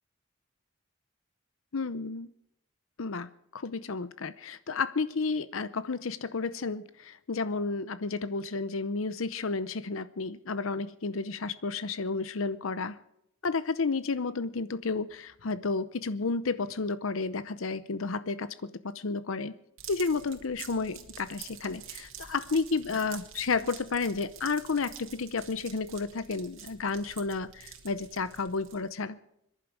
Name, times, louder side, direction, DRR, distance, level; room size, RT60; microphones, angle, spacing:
voice 1, 1.7-2.3 3.0-12.9 13.4-19.6 19.9-29.2, left 4 dB, 80° left, 14 dB, 0.7 m, -32 dB
sound 1, 19.8-28.9, right 9 dB, 75° right, 2.4 m, -48 dB
26.0 x 11.0 x 4.8 m, 0.76 s
head